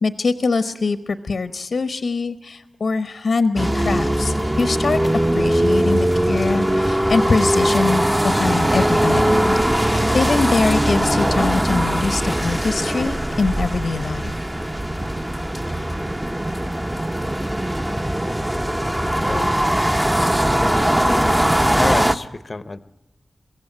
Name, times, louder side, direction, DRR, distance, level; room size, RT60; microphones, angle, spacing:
voice 1, 0.0-5.0 5.3-14.3, left 4 dB, 80° left, 11 dB, 0.9 m, -23 dB
sound 1, 3.6-22.2, right 1 dB, 15° right, 0.8 m, -20 dB
sound 2, 7.6-16.5, right 2 dB, 70° right, 4.3 m, -37 dB
voice 2, 19.2-19.5 20.5-21.4 21.7-22.8, left 3 dB, 45° left, 14 dB, 0.7 m, -28 dB
23.5 x 15.5 x 8.8 m, 0.99 s
wide cardioid pair, 75°, 0 cm